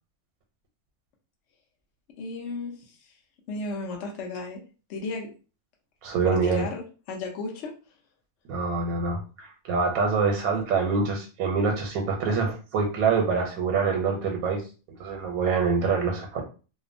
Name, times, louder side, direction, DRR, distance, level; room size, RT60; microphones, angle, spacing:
voice 1, 2.2-2.7 3.5-4.6 4.9-5.3 6.2-7.7, left 3 dB, 65° left, 0 dB, 0.9 m, -33 dB
voice 2, 6.0-6.6 8.5-14.6 15.0-16.4, right 5 dB, 85° right, 1 dB, 1.1 m, -25 dB
2.7 x 2.1 x 2.5 m, 0.35 s
omnidirectional pair, 1.5 m